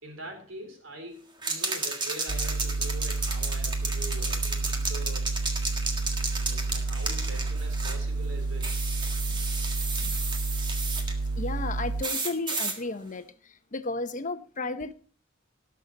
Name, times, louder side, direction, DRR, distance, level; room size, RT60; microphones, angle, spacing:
voice 1, 0.0-5.3 6.4-8.7 10.0-10.1, right 1 dB, 75° right, 3.8 m, -43 dB
sound 1, 1.4-8.0 8.6-11.1 12.0-12.8, right 3 dB, 25° right, 1.7 m, -33 dB
sound 2, 2.3-12.0, right 3 dB, 55° right, 0.6 m, -30 dB
voice 2, 11.4-13.3 13.7-14.9, left 3 dB, 40° left, 0.8 m, -33 dB
18.5 x 6.7 x 4.0 m
head